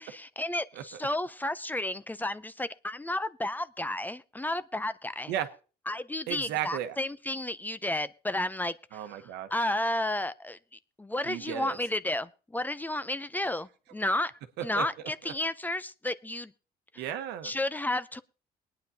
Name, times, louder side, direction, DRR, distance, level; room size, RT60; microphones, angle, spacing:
voice 1, 0.0-5.3 5.9-8.7 9.5-10.6 11.0-14.3 14.6-16.5 17.4-18.2, left 1 dB, 10° left, 14 dB, 0.5 m, -32 dB
voice 2, 6.3-7.0 8.9-9.5 11.2-11.8 14.0-14.1 14.6-14.8 15.2-15.3 17.0-17.5, right 10 dB, 90° right, 9 dB, 1.1 m, -34 dB
22.0 x 9.6 x 2.8 m, 0.36 s
cardioid pair, 110°, 17 cm